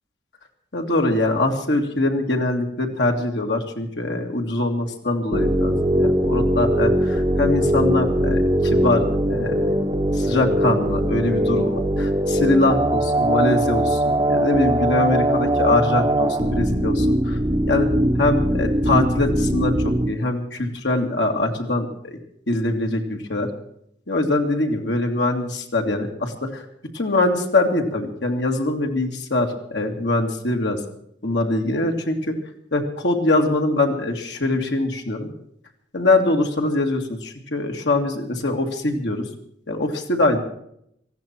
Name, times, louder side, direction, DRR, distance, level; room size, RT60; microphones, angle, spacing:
voice 1, 0.7-9.7 10.1-17.4 17.7-17.9 18.2-19.8 20.1-22.2 22.5-23.5 24.1-26.6 26.9-30.8 31.2-32.3 32.7-35.3 35.9-39.3 39.7-40.4, left 2 dB, 70° left, 2 dB, 2.1 m, -23 dB
sound 1, 5.3-20.1, right 1 dB, 20° right, 0.8 m, -21 dB
19.0 x 15.0 x 4.5 m, 0.72 s
head